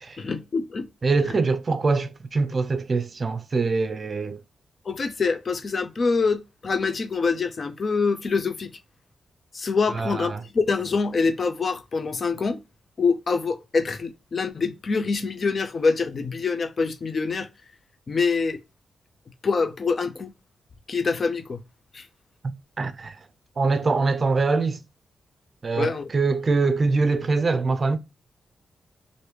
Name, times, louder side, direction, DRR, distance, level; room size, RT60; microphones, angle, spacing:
voice 1, 0.2-0.9 1.2-1.3 4.9-8.7 9.5-12.6 13.0-17.5 18.1-18.6 19.4-20.3 20.9-21.6 21.9-22.1 25.8-26.1, left 4 dB, 50° left, 0.5 m, -25 dB
voice 2, 1.0-4.4 10.0-10.4 22.8-23.2 23.6-24.8 25.6-28.0, right 3 dB, 45° right, 0.5 m, -23 dB
2.9 x 2.6 x 3.3 m
cardioid pair, 85°, 0 cm